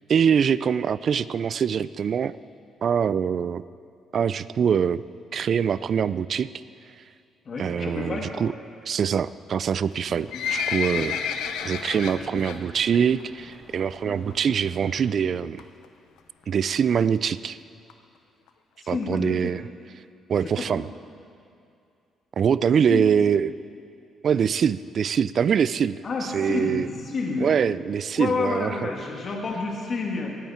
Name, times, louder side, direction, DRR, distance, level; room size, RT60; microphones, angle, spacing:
voice 1, 0.1-2.4 2.8-3.6 4.1-5.0 5.3-6.5 7.6-8.5 8.8-11.1 11.6-15.6 16.5-17.6 18.9-19.6 20.3-20.8 22.4-23.6 24.2-26.0 26.3-26.9 27.4-28.7, right 7 dB, 55° right, 17 dB, 0.3 m, -23 dB
voice 2, 7.5-8.3 10.1-10.4 10.9-11.1 12.1-12.4 14.0-14.2 18.8-19.5 20.4-20.7 22.9-23.0 26.0-27.5 28.2-30.3, left 4 dB, 50° left, 0 dB, 2.2 m, -30 dB
Livestock farm animals working animals, 9.9-12.6 12.9-13.2 13.5-13.6 14.3-14.4 14.7-14.8 15.0-15.1 15.6-15.9 16.4-16.5 16.8-16.9 17.0-17.1 17.3-17.4 17.9-18.0 18.5-18.6 19.0-19.1, left 7 dB, 85° left, 0.7 m, -30 dB
sound 1, 10.1-15.1, equal, 5° right, 3.1 m, -51 dB
18.0 x 9.1 x 4.4 m, 2.5 s
cardioid pair, 90°, 0 cm